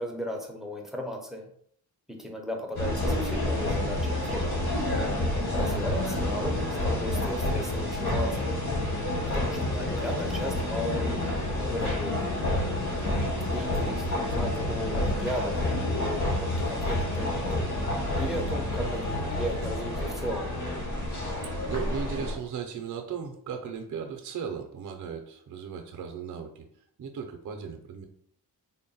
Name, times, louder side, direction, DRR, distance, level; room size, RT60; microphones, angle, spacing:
voice 1, 0.0-1.5 2.1-4.5 5.2-6.5 6.8-8.6 9.2-12.3 13.4-15.7 16.0-17.7 18.2-20.5, equal, ahead, 1 dB, 0.5 m, -36 dB
sound 1, 2.7-22.3, left 1 dB, 50° left, 1.1 m, -29 dB
voice 2, 5.4-5.8 13.0-13.4 21.4-26.7 27.0-28.1, right 7 dB, 55° right, 4 dB, 0.5 m, -37 dB
3.6 x 2.1 x 4.0 m, 0.65 s
wide cardioid pair, 165°, 38 cm